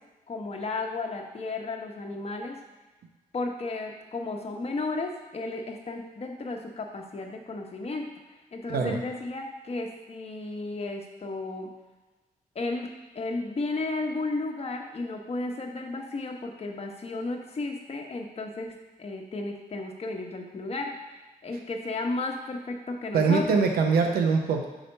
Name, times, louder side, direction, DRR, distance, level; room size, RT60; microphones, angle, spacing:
voice 1, 0.3-2.6 3.3-8.1 8.5-11.7 12.5-23.7, left 3 dB, 40° left, 2 dB, 1.0 m, -33 dB
voice 2, 8.7-9.0 23.1-24.6, right 5 dB, 85° right, 3 dB, 0.8 m, -23 dB
4.9 x 4.2 x 5.5 m, 1.2 s
cardioid pair, 80°, 15 cm